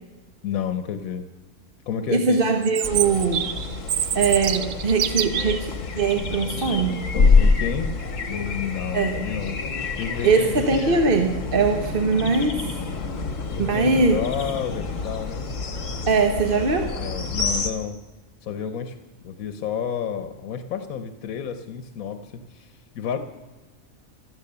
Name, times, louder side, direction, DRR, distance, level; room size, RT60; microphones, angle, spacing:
voice 1, 0.4-1.3 1.9-2.5 7.3-7.9 8.3-9.6 10.0-11.0 13.5-15.5 16.8-18.0 18.4-19.0 19.2-23.2, left 7 dB, 85° left, 9 dB, 1.3 m, -30 dB
voice 2, 2.1-3.4 4.1-7.0 8.9-9.2 10.2-12.6 13.6-14.2 16.1-16.9, right 4 dB, 45° right, 4 dB, 1.2 m, -21 dB
Chirp tweet, 2.6-5.6, right 9 dB, 80° right, 1.2 m, -26 dB
sound 1, 2.8-17.7, left 4 dB, 65° left, 1.8 m, -26 dB
16.0 x 13.0 x 6.8 m, 1.2 s
omnidirectional pair, 1.4 m